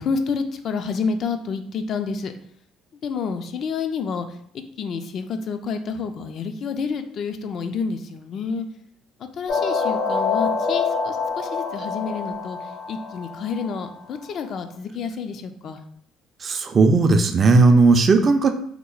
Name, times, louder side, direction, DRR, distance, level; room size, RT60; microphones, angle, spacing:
voice 1, 0.0-2.3 2.9-4.3 4.5-8.7 9.3-12.6 12.9-15.8, left 5 dB, 55° left, 7 dB, 0.4 m, -29 dB
sound 1, 9.5-13.9, left 5 dB, 85° left, 1.3 m, -26 dB
voice 2, 16.4-18.5, right 3 dB, 40° right, 6 dB, 0.4 m, -16 dB
2.9 x 2.1 x 3.9 m, 0.64 s
cardioid pair, 95°, 0 cm